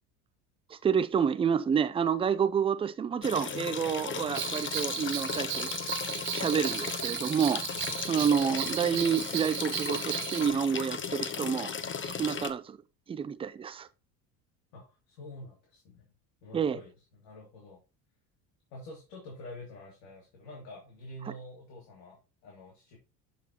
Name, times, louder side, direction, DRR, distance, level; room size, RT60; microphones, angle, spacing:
voice 1, 0.7-5.7 6.3-7.6 8.1-11.7 12.0-12.8 13.1-13.9 16.5-16.8, right 7 dB, 15° right, 0.3 m, -29 dB
sound 1, 3.2-12.5, left 6 dB, 25° left, 0.8 m, -36 dB
Bell, 4.3-10.5, right 14 dB, 45° right, 0.8 m, -36 dB
voice 2, 14.7-16.0 16.4-17.8 18.7-23.0, left 1 dB, 70° left, 2.4 m, -47 dB
11.5 x 4.2 x 2.9 m
hypercardioid pair, 70°, 50 cm